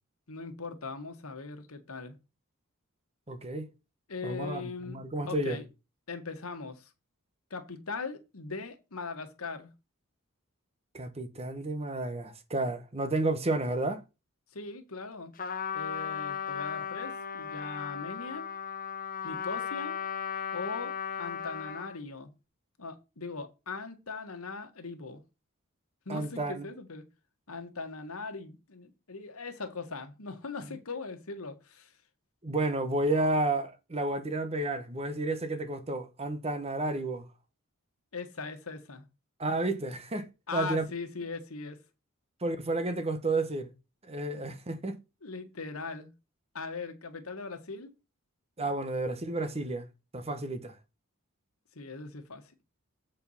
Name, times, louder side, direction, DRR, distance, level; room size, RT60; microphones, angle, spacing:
voice 1, 0.3-2.1 4.1-5.0 5.3-5.7 6.1-6.9 7.5-9.7 14.5-15.3 15.7-18.5 19.2-20.0 20.5-22.3 22.8-25.2 26.0-27.0 27.5-31.9 38.1-39.0 40.5-41.8 44.3-44.5 45.2-46.1 46.5-47.9 51.7-52.5, left 4 dB, 85° left, 1.5 m, -40 dB
voice 2, 3.3-3.7 4.2-5.6 10.9-14.0 26.1-26.6 32.4-37.3 39.4-40.8 42.4-43.7 44.1-45.0 48.6-49.9 50.1-50.8, right 2 dB, 30° right, 0.9 m, -31 dB
Trumpet, 15.4-22.0, left 7 dB, 40° left, 0.9 m, -36 dB
7.5 x 4.6 x 5.6 m
head